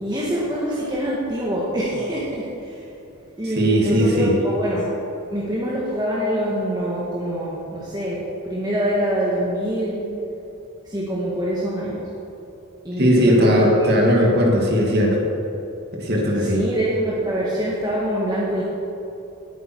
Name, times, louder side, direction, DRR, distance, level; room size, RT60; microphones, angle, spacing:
voice 1, 0.0-2.9 3.4-4.9 5.3-10.1 10.9-12.0 12.8-13.9 16.4-18.6, equal, 20° right, -6 dB, 1.7 m, -25 dB
voice 2, 3.5-4.3 13.0-15.2 16.0-16.6, equal, 50° right, -2 dB, 2.4 m, -18 dB
18.5 x 9.3 x 4.7 m, 2.9 s
head